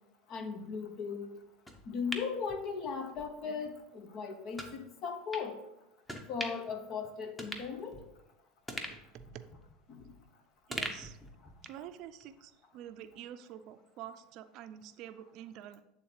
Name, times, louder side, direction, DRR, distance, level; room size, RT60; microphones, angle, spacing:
voice 1, 0.3-1.3 1.9-5.5 6.3-8.0 9.9-10.1, left 5 dB, 50° left, 6 dB, 1.1 m, -38 dB
sound 1, 1.7-3.3 3.7-3.8 4.6-4.7 5.3-5.5 6.1-6.7 7.0-7.1 7.4-8.3 8.7-10.3 10.7-11.9 12.2-12.3, equal, 10° left, 1.0 m, -42 dB
voice 2, 9.1-9.5 10.7-11.2 11.6-15.8, right 10 dB, 55° right, 11 dB, 0.5 m, -47 dB
8.4 x 3.7 x 4.6 m, 0.88 s
supercardioid pair, 100°, 0 cm